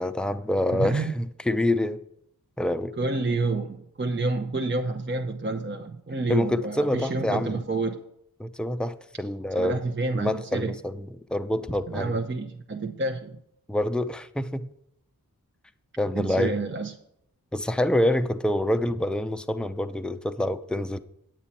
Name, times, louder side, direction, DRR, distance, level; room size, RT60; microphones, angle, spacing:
voice 1, 0.0-2.0 2.6-2.9 6.3-7.6 8.4-9.8 10.1-12.1 13.7-14.7 16.0-16.5 17.5-21.0, left 1 dB, ahead, 9 dB, 0.6 m, -26 dB
voice 2, 0.7-1.2 3.0-8.0 9.5-10.8 11.9-13.4 16.1-16.9, right 3 dB, 35° right, 4 dB, 0.8 m, -29 dB
9.0 x 8.9 x 4.2 m, 0.74 s
wide cardioid pair, 45°, 36 cm